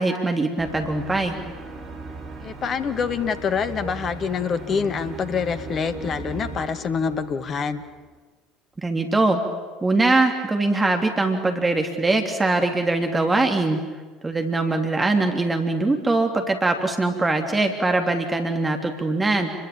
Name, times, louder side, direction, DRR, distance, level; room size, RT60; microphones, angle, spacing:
voice 1, 0.0-1.4 8.8-9.4 9.8-13.8 14.2-19.5, right 2 dB, 15° right, 4 dB, 3.3 m, -22 dB
sound 1, 0.6-8.2, right 3 dB, 40° right, 5.4 m, -38 dB
voice 2, 2.4-7.8, left 6 dB, 40° left, 10 dB, 1.8 m, -26 dB
29.5 x 23.0 x 8.7 m, 1.3 s
figure-of-eight pair, 65°, 0 cm